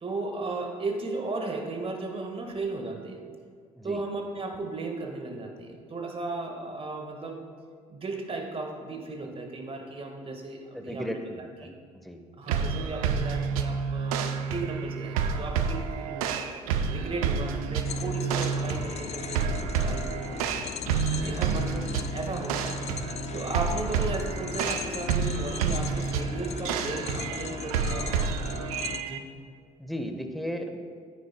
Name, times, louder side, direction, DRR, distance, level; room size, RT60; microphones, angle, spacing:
voice 1, 0.0-3.3 3.8-7.4 7.9-11.1 11.4-11.7 12.4-16.4 16.9-20.5 21.2-22.8 23.3-28.2 29.0-29.3, right 3 dB, 30° right, 3 dB, 1.7 m, -35 dB
voice 2, 10.7-11.7 12.0-12.2 21.1-21.4 29.8-30.8, equal, ahead, 5 dB, 1.0 m, -35 dB
sound 1, 12.5-29.2, right 6 dB, 75° right, 0.6 m, -29 dB
sound 2, 17.8-29.0, left 9 dB, 35° left, 0.4 m, -38 dB
15.0 x 9.5 x 2.3 m, 2.1 s
figure-of-eight pair, 50°, 19 cm